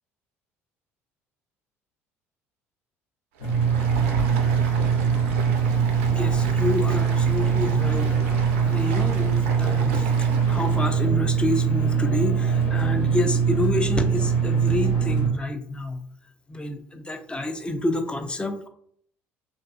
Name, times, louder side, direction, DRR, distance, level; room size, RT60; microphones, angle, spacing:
Stream, 3.3-10.9, right 4 dB, 75° right, 0.4 m, -35 dB
sound 1, 3.4-15.3, right 6 dB, 70° left, 0.8 m, -22 dB
voice 1, 6.1-8.2 8.6-10.1 10.5-16.0 16.5-18.7, left 2 dB, 15° left, 7 dB, 0.4 m, -28 dB
2.4 x 2.2 x 2.4 m, 0.63 s
hypercardioid pair, 60°, 7 cm